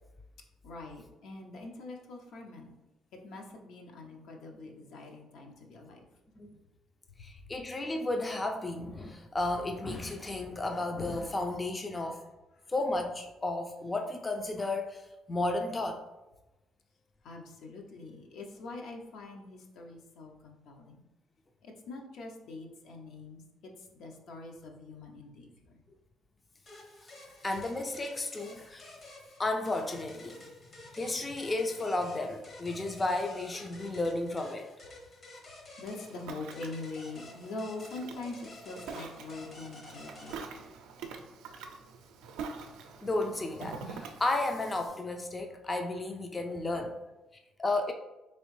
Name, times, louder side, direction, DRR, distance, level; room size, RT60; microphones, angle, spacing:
voice 1, 0.6-2.7 3.1-6.0 12.6-12.7 17.2-21.0 21.6-25.8 27.2-27.4 35.8-40.5, left 3 dB, 75° left, 2 dB, 0.6 m, -44 dB
voice 2, 7.2-12.2 12.7-16.0 27.0-27.1 27.4-28.9 29.4-30.4 30.9-34.7 43.0-47.0 47.6-47.9, left 2 dB, 25° left, 4 dB, 0.4 m, -33 dB
sound 1, 26.7-40.4, left 2 dB, 45° left, 0.9 m, -51 dB
Ocean, 35.8-44.9, right 5 dB, 85° right, 0.4 m, -46 dB
3.6 x 3.0 x 3.1 m, 1.0 s
cardioid pair, 90°, 0 cm